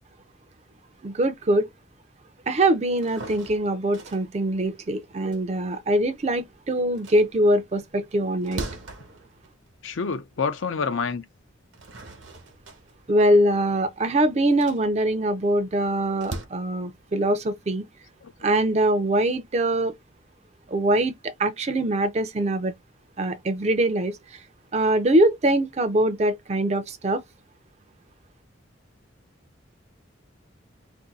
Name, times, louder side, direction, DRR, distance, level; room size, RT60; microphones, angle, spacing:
voice 1, 1.0-1.7 2.5-8.6 13.1-17.8 18.4-19.9 20.7-21.1 21.4-22.7 23.2-24.2 24.7-27.2, right 1 dB, 35° right, 0.4 m, -23 dB
sound 1, 3.0-6.4 6.8-10.3 10.8-10.9 11.5-16.4, right 2 dB, 70° right, 1.0 m, -41 dB
voice 2, 9.8-11.2 18.2-18.3, left 5 dB, 75° left, 0.5 m, -27 dB
2.6 x 2.6 x 3.9 m
head